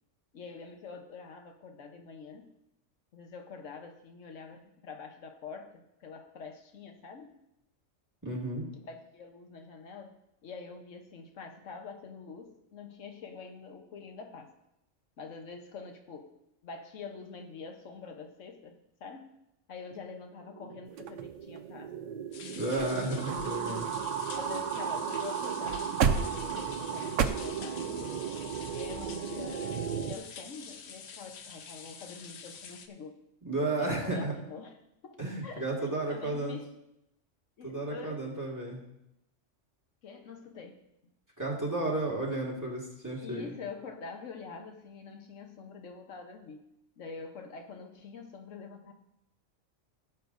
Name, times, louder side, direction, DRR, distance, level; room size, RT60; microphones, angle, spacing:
voice 1, 0.3-2.5 3.1-7.4 8.8-14.5 15.2-16.4 16.6-19.4 19.7-21.9 24.3-28.2 28.7-33.2 33.8-34.8 35.0-36.7 37.6-38.3 40.0-40.8 43.2-48.9, left 5 dB, 85° left, 4 dB, 1.3 m, -45 dB
voice 2, 8.2-8.7 22.4-23.9 33.4-34.3 35.2-36.6 37.6-38.8 41.4-43.5, right 2 dB, 15° right, -3 dB, 1.9 m, -33 dB
sound 1, 20.4-30.2, right 7 dB, 60° right, 0.4 m, -36 dB
sound 2, 21.0-21.8 22.4-22.5 22.7-23.0 23.3-24.9 25.1-25.3 25.6-27.3, right 6 dB, 85° right, 1.0 m, -32 dB
sound 3, 22.3-32.9, left 6 dB, 65° left, 1.0 m, -47 dB
17.0 x 7.3 x 2.6 m, 0.85 s
omnidirectional pair, 1.3 m